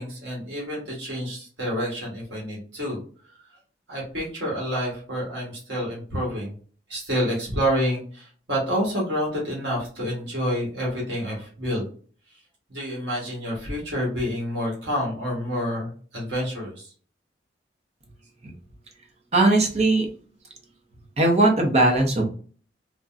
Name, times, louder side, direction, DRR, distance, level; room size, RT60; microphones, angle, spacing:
voice 1, 0.0-3.0 3.9-6.5 6.9-11.9 12.7-16.9, equal, 80° right, -3 dB, 1.4 m, -28 dB
voice 2, 19.3-20.1 21.2-22.2, right 2 dB, 40° right, 2 dB, 0.7 m, -19 dB
3.7 x 2.2 x 2.4 m, 0.42 s
head